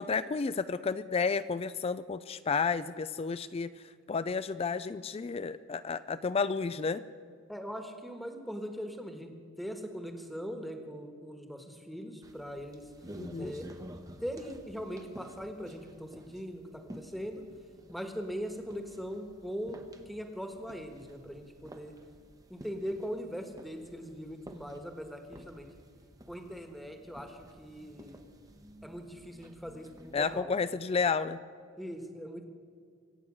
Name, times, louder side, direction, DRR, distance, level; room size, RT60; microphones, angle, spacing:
voice 1, 0.0-3.7 4.1-7.0 13.2-13.6 30.1-31.4, left 5 dB, 25° left, 14 dB, 0.3 m, -31 dB
voice 2, 7.5-9.3 9.6-12.8 13.4-13.7 14.2-17.4 17.9-21.9 22.5-25.7 26.3-28.2 28.8-30.5 31.8-32.4, equal, ahead, 5 dB, 1.4 m, -40 dB
sound 1, 12.2-30.4, equal, 15° right, 0.9 m, -52 dB
25.0 x 8.4 x 6.3 m, 2.2 s
head